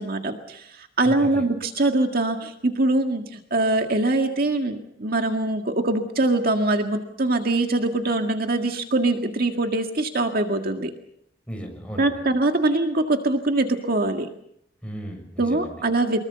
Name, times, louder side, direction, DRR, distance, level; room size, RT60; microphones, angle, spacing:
voice 1, 0.0-10.9 12.0-14.3 15.4-16.3, right 2 dB, 55° right, 5 dB, 1.9 m, -23 dB
voice 2, 1.0-1.5 11.5-12.2 14.8-15.8, right 1 dB, 5° left, 3 dB, 6.6 m, -36 dB
24.5 x 22.0 x 6.9 m, 0.73 s
head